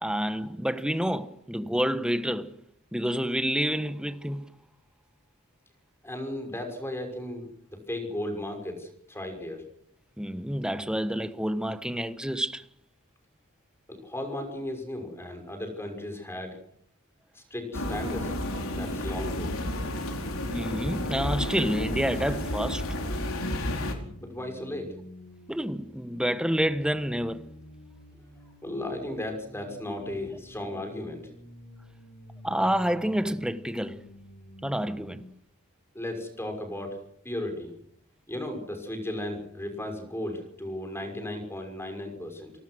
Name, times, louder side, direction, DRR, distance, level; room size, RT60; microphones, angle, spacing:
voice 1, 0.0-2.5 2.9-4.4 10.2-12.6 20.5-22.8 25.5-27.4 32.4-34.0 34.6-35.2, equal, 5° right, 1.2 m, -28 dB
voice 2, 6.0-9.6 13.9-16.6 17.3-18.3 18.7-19.5 24.2-24.9 28.6-31.3 35.9-37.0 37.2-37.7 38.3-42.5, left 1 dB, 10° left, 6.1 m, -35 dB
sound 1, 17.7-23.9, left 1 dB, 75° left, 4.5 m, -31 dB
sound 2, 23.1-35.3, equal, 90° left, 7.8 m, -49 dB
29.0 x 19.0 x 6.3 m
head